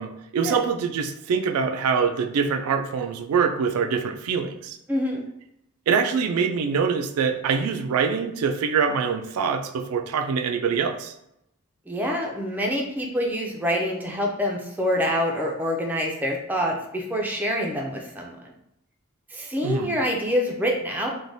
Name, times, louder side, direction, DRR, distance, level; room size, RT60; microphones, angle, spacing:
voice 1, 0.0-4.8 5.9-11.1 19.6-20.0, right 6 dB, 85° right, 6 dB, 0.3 m, -24 dB
voice 2, 4.9-5.2 11.9-18.4 19.3-21.1, equal, 10° right, -1 dB, 0.4 m, -26 dB
3.2 x 2.2 x 2.6 m, 0.79 s
head